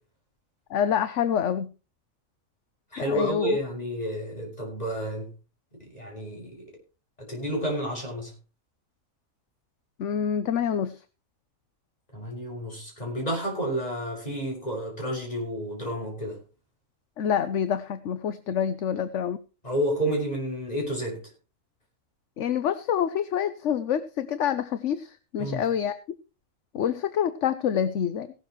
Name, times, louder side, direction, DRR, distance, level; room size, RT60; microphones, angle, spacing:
voice 1, 0.7-1.7 3.0-3.6 10.0-11.0 17.2-19.4 22.4-26.0 26.7-28.3, left 8 dB, 60° left, 12 dB, 1.1 m, -27 dB
voice 2, 2.9-5.3 5.9-6.6 7.3-8.3 12.1-16.4 19.6-21.2 25.4-25.6, equal, 30° left, 0 dB, 6.3 m, -30 dB
17.5 x 12.0 x 3.1 m, 0.32 s
omnidirectional pair, 1.4 m